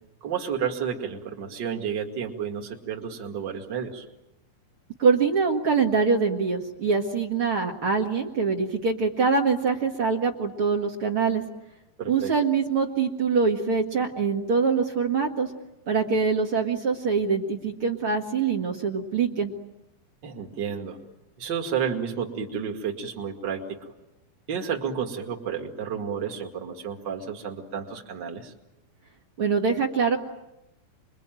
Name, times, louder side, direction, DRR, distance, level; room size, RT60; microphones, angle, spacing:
voice 1, 0.2-4.0 12.0-12.3 20.2-21.0 21.4-23.9 24.5-28.5, right 7 dB, 55° right, 2 dB, 1.2 m, -31 dB
voice 2, 5.0-11.4 12.1-15.5 15.9-19.5 29.4-30.2, right 5 dB, 85° right, 1 dB, 1.2 m, -24 dB
28.5 x 22.0 x 9.1 m, 0.93 s
omnidirectional pair, 5.8 m